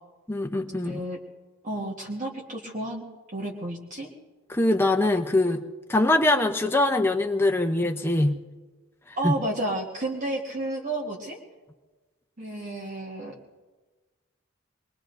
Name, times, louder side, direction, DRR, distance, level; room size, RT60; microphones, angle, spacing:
voice 1, 0.3-1.0 4.5-5.6 5.9-8.4 9.2-9.3, left 2 dB, 10° left, 3 dB, 0.6 m, -23 dB
voice 2, 0.8-1.2 1.6-3.0 3.3-4.1 9.2-11.4 12.4-13.3, right 1 dB, 35° right, -2 dB, 1.4 m, -31 dB
24.0 x 21.0 x 2.6 m, 1.3 s
head